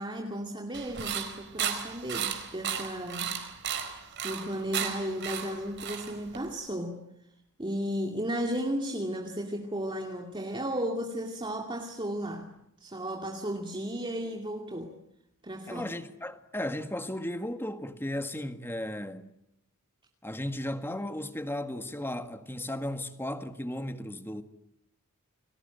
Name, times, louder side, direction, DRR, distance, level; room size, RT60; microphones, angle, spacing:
voice 1, 0.0-3.4 4.2-7.0 7.6-12.5 12.8-14.9 15.4-15.8, equal, 20° right, 2.5 m, -34 dB
sound 1, 0.7-6.5, right 8 dB, 55° right, 4.3 m, -34 dB
voice 2, 15.7-19.3 20.2-24.4, left 1 dB, 10° left, 1.8 m, -35 dB
30.0 x 21.0 x 9.2 m
head